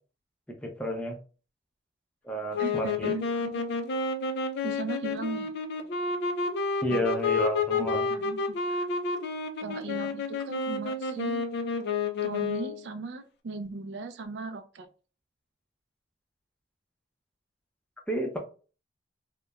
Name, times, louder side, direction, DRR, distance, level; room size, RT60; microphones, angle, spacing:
voice 1, 0.5-1.2 2.2-3.1 6.8-8.1 18.1-18.4, equal, 5° left, 1 dB, 0.5 m, -31 dB
sound 1, 2.5-12.9, left 4 dB, 60° left, 0.4 m, -30 dB
voice 2, 2.6-3.6 4.6-5.5 6.9-7.0 7.8-8.9 9.6-11.5 12.2-14.9, right 3 dB, 60° right, 9 dB, 0.4 m, -37 dB
2.9 x 2.1 x 2.3 m, 0.36 s
head